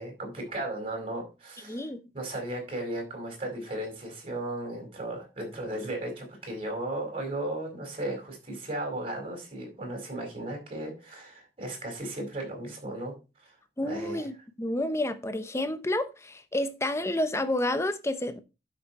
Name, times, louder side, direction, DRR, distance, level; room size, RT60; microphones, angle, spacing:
voice 1, 0.0-1.8 2.1-13.1 13.4-13.5 13.8-14.3, right 1 dB, 35° right, 4.6 m, -35 dB
voice 2, 1.7-2.0 13.8-18.4, left 1 dB, 15° left, 0.8 m, -30 dB
11.5 x 6.2 x 4.2 m
head